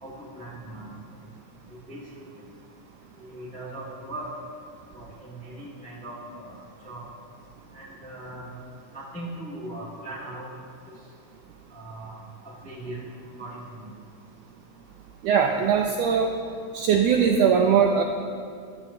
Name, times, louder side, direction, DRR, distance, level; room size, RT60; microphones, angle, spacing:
voice 1, 0.0-0.9 1.7-2.0 3.2-4.3 4.9-7.0 7.7-8.6 8.9-10.6 10.9-11.0 11.7-13.0 13.4-13.9, right 1 dB, 5° left, -6 dB, 0.9 m, -39 dB
voice 2, 15.2-16.4 16.7-18.0, right 7 dB, 80° right, 3 dB, 1.5 m, -20 dB
13.5 x 10.5 x 2.8 m, 2.3 s
omnidirectional pair, 3.4 m